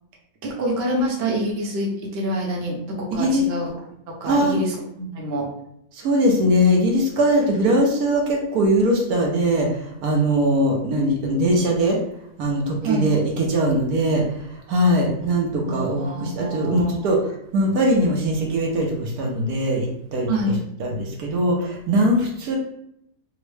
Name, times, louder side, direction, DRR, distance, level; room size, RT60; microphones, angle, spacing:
voice 1, 0.4-3.7 4.1-5.5 12.8-13.1 15.7-17.0 20.3-20.6, right 1 dB, 50° right, -2 dB, 0.8 m, -26 dB
voice 2, 3.1-3.4 4.2-4.6 5.9-12.0 12.4-20.3 20.8-22.6, equal, 70° right, -1 dB, 1.1 m, -21 dB
3.6 x 2.0 x 3.1 m, 0.75 s
omnidirectional pair, 1.8 m